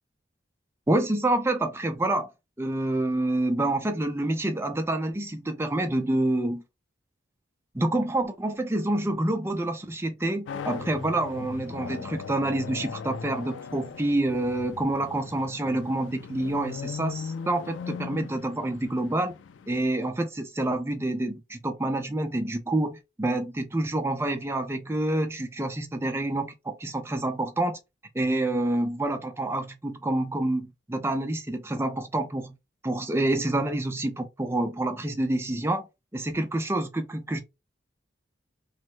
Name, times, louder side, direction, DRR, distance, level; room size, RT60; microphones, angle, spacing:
voice 1, 0.9-2.3 2.6-6.6 7.7-19.3 19.7-27.8 28.1-32.5 32.8-35.9 36.1-37.4, right 1 dB, 15° right, 0.4 m, -27 dB
sound 1, 10.5-19.8, left 6 dB, 75° left, 0.3 m, -39 dB
3.1 x 2.0 x 3.1 m
head